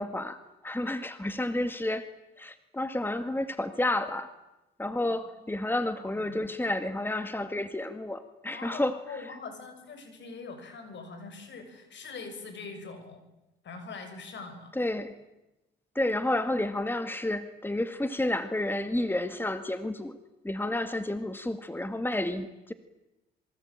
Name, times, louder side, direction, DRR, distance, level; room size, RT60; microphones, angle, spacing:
voice 1, 0.0-2.1 2.4-4.3 4.8-9.0 14.8-15.2 16.0-20.2 20.4-22.7, left 1 dB, 10° left, 10 dB, 2.0 m, -30 dB
voice 2, 6.0-6.3 8.5-13.2 13.6-14.7, left 4 dB, 60° left, 7 dB, 7.3 m, -43 dB
26.5 x 23.5 x 9.0 m, 0.98 s
cardioid pair, 75°, 21 cm